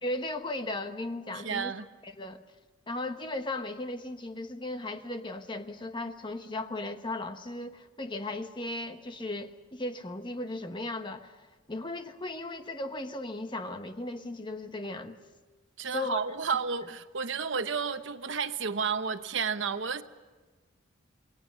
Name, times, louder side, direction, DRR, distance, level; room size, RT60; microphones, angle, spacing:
voice 1, 0.0-1.7 2.0-2.4 2.9-15.2 15.9-16.2, left 2 dB, 25° left, 8 dB, 1.1 m, -36 dB
voice 2, 1.3-1.8 15.8-20.0, right 5 dB, 70° right, 10 dB, 1.0 m, -31 dB
28.0 x 21.0 x 6.3 m, 1.3 s
head